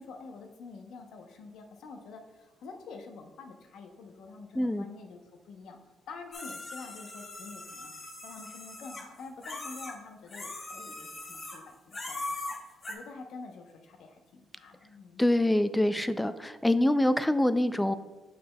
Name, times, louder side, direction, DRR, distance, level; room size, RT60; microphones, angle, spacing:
voice 1, 0.0-5.8 6.1-12.4 12.9-15.3, left 4 dB, 75° left, 5 dB, 0.8 m, -47 dB
voice 2, 4.6-4.9 15.2-17.9, left 1 dB, 10° left, 13 dB, 0.3 m, -25 dB
sound 1, 6.3-10.0 10.3-11.6 11.9-12.9, left 2 dB, 35° left, 1.1 m, -40 dB
6.6 x 6.6 x 2.2 m, 1.3 s
cardioid pair, 90°, 0 cm